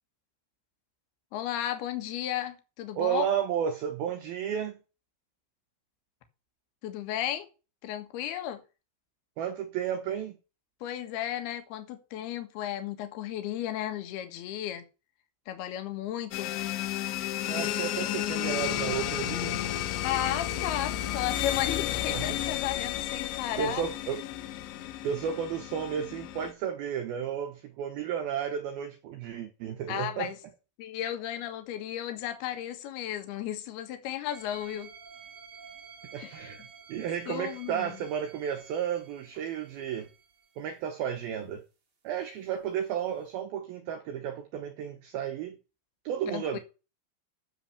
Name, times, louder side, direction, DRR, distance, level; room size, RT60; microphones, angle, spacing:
voice 1, 1.3-3.2 6.8-7.5 7.8-8.6 10.8-14.8 15.5-16.6 20.0-23.8 29.9-30.4 30.8-34.9 36.2-36.4 37.3-38.0 46.3-46.6, left 11 dB, 65° left, 3.2 m, -34 dB
voice 2, 3.0-4.8 9.4-10.4 17.4-19.6 22.1-22.3 23.6-24.2 25.0-30.3 36.1-36.6 36.9-40.1 40.6-41.6 42.0-45.6 46.0-46.6, right 9 dB, 75° right, 2.4 m, -33 dB
sound 1, 16.3-26.5, left 12 dB, 80° left, 3.0 m, -32 dB
sound 2, 34.3-40.8 43.2-43.3, right 6 dB, 35° right, 2.9 m, -51 dB
9.2 x 7.2 x 6.9 m
omnidirectional pair, 5.5 m